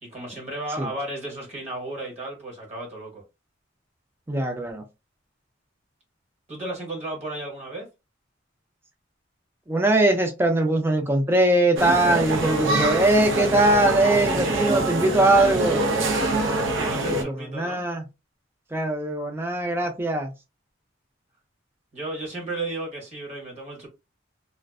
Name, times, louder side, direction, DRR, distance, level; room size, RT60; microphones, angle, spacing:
voice 1, 0.0-3.2 6.5-7.9 16.7-17.8 21.9-23.9, right 2 dB, 35° right, 1.1 m, -34 dB
voice 2, 4.3-4.8 9.7-15.9 17.1-18.0 18.7-20.3, right 1 dB, 10° right, 0.5 m, -21 dB
sound 1, 11.8-17.2, right 2 dB, 75° right, 0.5 m, -25 dB
2.4 x 2.1 x 2.3 m
head